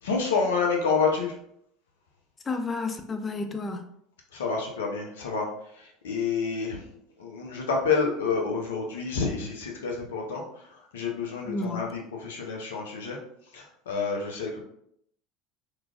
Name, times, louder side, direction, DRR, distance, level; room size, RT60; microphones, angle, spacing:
voice 1, 0.0-1.4 4.3-6.9 7.2-13.2 13.5-14.6, left 5 dB, 80° left, 1 dB, 0.6 m, -29 dB
voice 2, 2.5-3.8 11.5-11.8, left 3 dB, 30° left, 7 dB, 0.4 m, -31 dB
3.1 x 2.3 x 2.4 m, 0.70 s
hypercardioid pair, 75°, 0 cm